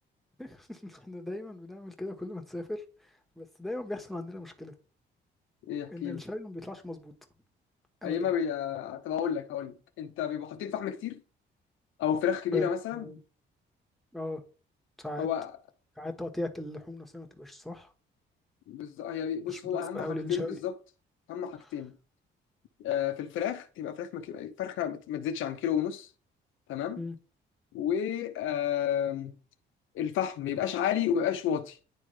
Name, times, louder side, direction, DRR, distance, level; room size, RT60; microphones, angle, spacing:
voice 1, 0.4-4.7 5.9-7.1 8.0-8.3 12.5-13.2 14.1-14.4 15.0-15.3 16.0-17.9 19.5-20.6 21.6-21.7 27.0-27.1, left 1 dB, ahead, 1.4 m, -38 dB
voice 2, 5.7-6.2 8.0-11.2 12.0-13.0 15.2-15.5 18.7-20.7 21.3-22.0 22.8-26.1 26.7-27.0 27.7-29.3 29.9-31.8, left 9 dB, 80° left, 0.7 m, -31 dB
10.0 x 3.5 x 3.3 m
cardioid pair, 90°, 20 cm